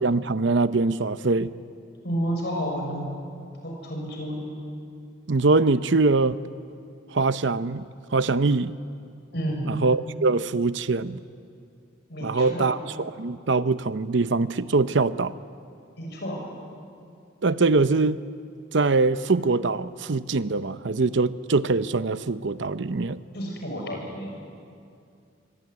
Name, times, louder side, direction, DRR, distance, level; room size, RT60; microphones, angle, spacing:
voice 1, 0.0-1.5 5.3-6.4 7.1-7.9 8.1-8.7 9.6-11.2 12.2-15.3 17.4-18.2 18.7-23.2, right 3 dB, 70° right, 14 dB, 0.7 m, -23 dB
voice 2, 2.0-3.1 3.6-4.5 9.3-9.7 12.1-12.8 16.0-16.5 23.3-24.3, equal, 55° left, 1 dB, 6.7 m, -31 dB
25.0 x 23.5 x 9.5 m, 2.4 s
head